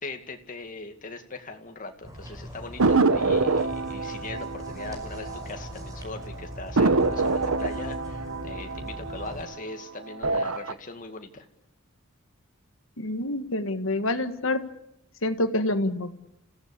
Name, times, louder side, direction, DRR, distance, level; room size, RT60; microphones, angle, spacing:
voice 1, 0.0-11.5, left 3 dB, 40° left, 5 dB, 2.2 m, -40 dB
sound 1, 2.0-9.4, equal, 15° right, 5.4 m, -40 dB
sound 2, 2.8-5.9 6.1-6.2 6.8-9.7 10.1-10.7, right 3 dB, 80° right, 1.1 m, -25 dB
voice 2, 13.0-14.7 15.2-16.2, left 1 dB, 65° left, 9 dB, 1.7 m, -27 dB
29.5 x 16.0 x 8.4 m, 0.80 s
head